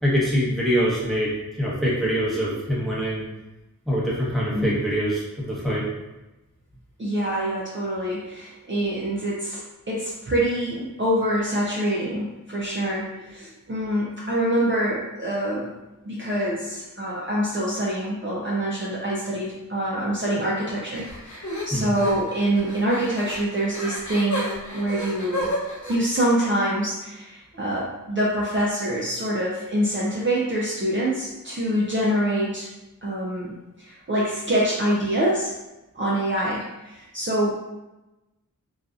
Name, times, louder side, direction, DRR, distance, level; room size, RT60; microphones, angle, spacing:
voice 1, 0.0-3.3 3.9-5.8 21.7-21.9, equal, ahead, -8 dB, 0.9 m, -24 dB
voice 2, 7.0-15.7 16.1-24.5 24.7-25.5 25.9-32.7 33.0-35.5 35.9-37.5, right 1 dB, 35° right, -6 dB, 0.5 m, -25 dB
sound 1, 20.9-26.0, left 1 dB, 60° left, 0.7 m, -32 dB
2.6 x 2.3 x 2.4 m, 1.0 s
wide cardioid pair, 60°, 34 cm